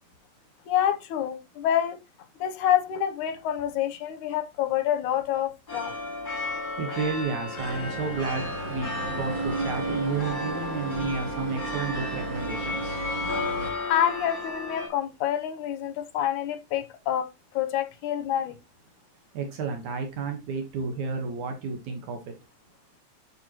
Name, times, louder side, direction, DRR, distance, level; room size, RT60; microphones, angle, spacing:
voice 1, 0.7-2.0 2.4-5.9 13.9-17.3 17.5-18.6, left 10 dB, 90° left, 2.4 m, -27 dB
sound 1, 5.7-14.9, left 3 dB, 15° left, 4.9 m, -34 dB
voice 2, 6.8-13.0 19.3-22.3, right 4 dB, 75° right, 2.7 m, -32 dB
sound 2, 7.6-13.7, right 3 dB, 45° right, 1.8 m, -34 dB
9.1 x 6.9 x 3.0 m
omnidirectional pair, 3.4 m